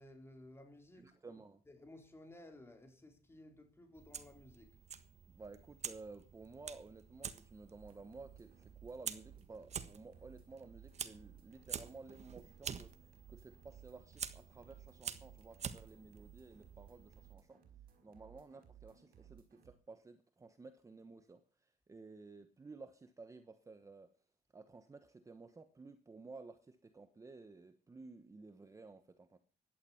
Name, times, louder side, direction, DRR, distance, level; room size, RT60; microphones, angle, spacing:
voice 1, 0.0-1.4 1.7-4.8 18.1-18.2, left 1 dB, 15° left, 4.0 m, -57 dB
voice 2, 0.9-1.6 5.3-17.6 18.0-24.1 24.5-29.4, right 3 dB, 20° right, 1.1 m, -54 dB
Fire, 3.9-17.3, right 7 dB, 45° right, 1.4 m, -49 dB
sound 1, 7.8-19.7, right 9 dB, 65° right, 5.2 m, -61 dB
16.0 x 11.5 x 5.8 m
cardioid pair, 145°, 16 cm